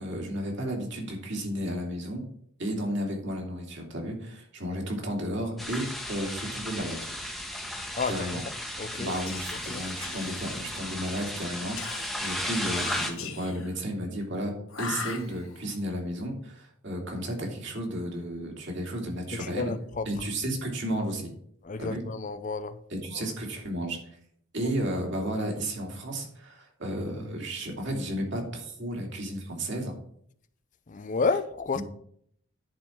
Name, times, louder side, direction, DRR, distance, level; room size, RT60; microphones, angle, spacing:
voice 1, 0.0-2.2 2.6-7.0 8.1-8.4 9.0-19.7 20.1-21.3 21.8-22.0 22.9-24.0 24.5-29.9 31.7-31.8, right 1 dB, 55° right, 2.7 m, -33 dB
sound 1, 5.6-13.1, left 1 dB, ahead, 1.1 m, -35 dB
voice 2, 8.0-8.4 8.8-9.2 9.7-9.8 19.3-20.1 21.6-22.8 23.1-23.2 24.6-24.7 30.9-31.8, left 4 dB, 35° left, 0.5 m, -31 dB
Whispering, 9.0-11.0 11.8-13.8 14.7-15.7, left 5 dB, 65° left, 1.5 m, -40 dB
10.5 x 4.5 x 7.1 m
head